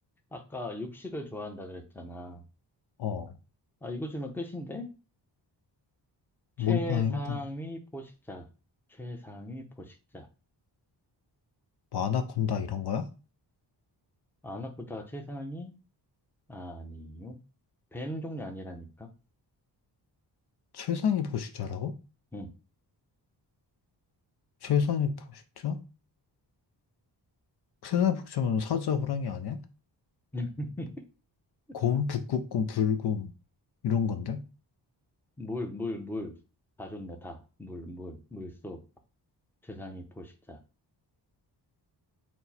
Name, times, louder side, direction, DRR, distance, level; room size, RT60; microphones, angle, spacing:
voice 1, 0.3-2.4 3.8-4.9 6.6-8.5 8.9-10.3 14.4-15.7 16.5-17.4 17.9-19.1 22.3-22.5 30.3-30.9 35.4-36.4 36.8-38.8 39.6-40.6, left 1 dB, 5° left, 0.6 m, -38 dB
voice 2, 3.0-3.3 6.6-7.4 11.9-13.1 20.7-22.0 24.6-25.8 27.8-29.6 31.7-33.3 33.8-34.4, left 7 dB, 65° left, 0.6 m, -29 dB
4.5 x 2.1 x 4.1 m
wide cardioid pair, 120°, 43 cm